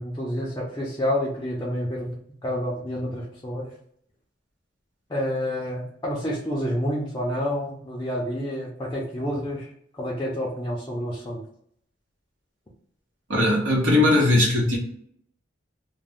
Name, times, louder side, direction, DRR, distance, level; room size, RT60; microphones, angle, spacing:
voice 1, 0.0-2.1 2.4-3.7 5.1-9.7 9.9-11.4, equal, 20° left, -4 dB, 0.5 m, -28 dB
voice 2, 13.3-14.8, left 2 dB, 80° right, -3 dB, 1.1 m, -19 dB
2.5 x 2.1 x 3.3 m, 0.67 s
head